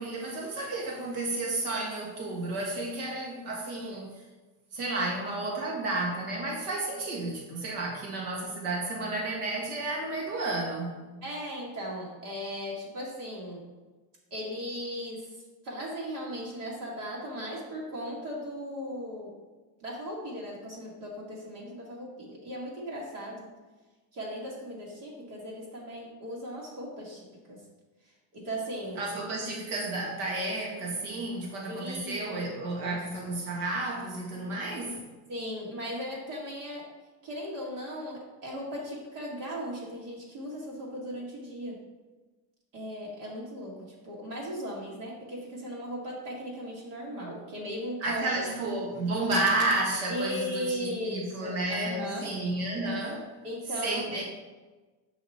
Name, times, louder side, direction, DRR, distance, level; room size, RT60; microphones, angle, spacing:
voice 1, 0.0-4.2 4.7-11.0 29.0-35.1 48.0-53.3 53.8-54.2, right 2 dB, 85° right, -2 dB, 2.0 m, -32 dB
voice 2, 11.2-13.7 14.3-15.3 15.6-19.3 19.8-23.5 24.1-27.6 28.3-29.0 31.7-32.9 35.3-36.9 37.2-41.8 42.7-48.3 50.1-52.3 53.4-54.2, equal, 65° right, -4 dB, 2.2 m, -37 dB
7.8 x 5.6 x 4.3 m, 1.2 s
cardioid pair, 180°, 43 cm